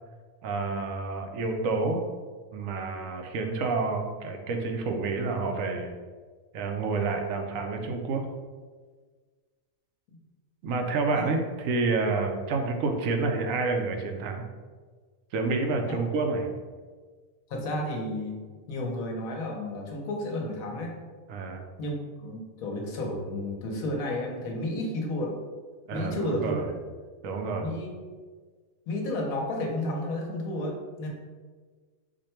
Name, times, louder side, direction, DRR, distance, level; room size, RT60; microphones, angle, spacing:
voice 1, 0.4-2.0 2.5-5.9 6.5-8.2 10.6-14.4 15.3-16.5 21.3-21.6 25.9-26.7 27.2-27.7, right 3 dB, 70° right, 4 dB, 0.9 m, -29 dB
voice 2, 17.5-18.4 18.7-21.0 21.8-21.9 22.2-25.3 25.9-26.8 27.6-27.9 28.9-31.1, left 1 dB, 65° left, 0 dB, 1.2 m, -32 dB
5.0 x 2.2 x 4.3 m, 1.5 s
omnidirectional pair, 1.6 m